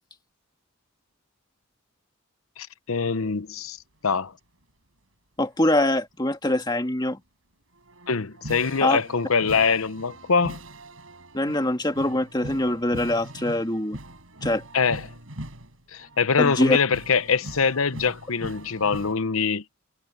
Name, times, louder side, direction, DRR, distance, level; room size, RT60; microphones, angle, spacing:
voice 1, 2.6-3.8 4.0-4.3 8.1-10.6 14.7-15.1 15.9-19.6, left 5 dB, 85° left, 0.9 m, -24 dB
voice 2, 5.4-7.2 8.8-9.0 11.3-14.0 14.4-14.6 16.4-16.8, left 1 dB, 20° left, 2.1 m, -23 dB
sound 1, 7.7-19.1, right 1 dB, 75° right, 5.1 m, -41 dB
head